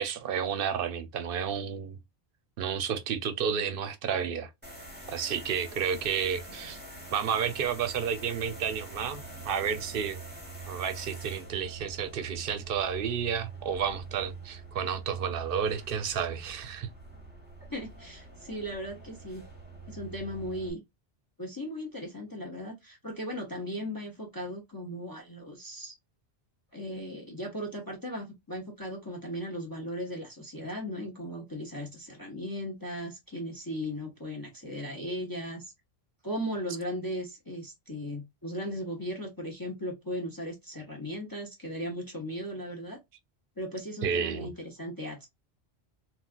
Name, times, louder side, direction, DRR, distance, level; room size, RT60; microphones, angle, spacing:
voice 1, 0.0-2.0 2.6-4.5 5.1-6.8 7.1-10.2 10.7-16.9 44.0-44.5, right 7 dB, 65° right, 0.8 m, -31 dB
sound 1, 4.6-20.7, right 3 dB, 10° right, 1.0 m, -45 dB
voice 2, 17.7-19.4 19.9-20.8 21.4-25.9 26.7-35.7 36.2-43.0 43.6-45.3, equal, 25° left, 0.7 m, -37 dB
3.8 x 2.3 x 2.4 m
omnidirectional pair, 1.0 m